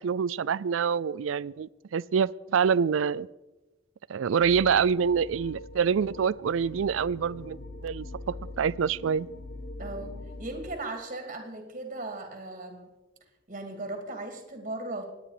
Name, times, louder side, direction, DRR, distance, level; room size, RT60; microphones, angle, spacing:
voice 1, 0.0-3.3 4.1-9.3, right 6 dB, 85° right, 22 dB, 0.4 m, -26 dB
sound 1, 4.4-10.7, left 1 dB, 45° left, 1.3 m, -43 dB
voice 2, 9.8-12.9 13.5-15.0, right 2 dB, 40° right, 5 dB, 2.4 m, -37 dB
26.0 x 9.9 x 5.0 m, 1.1 s
head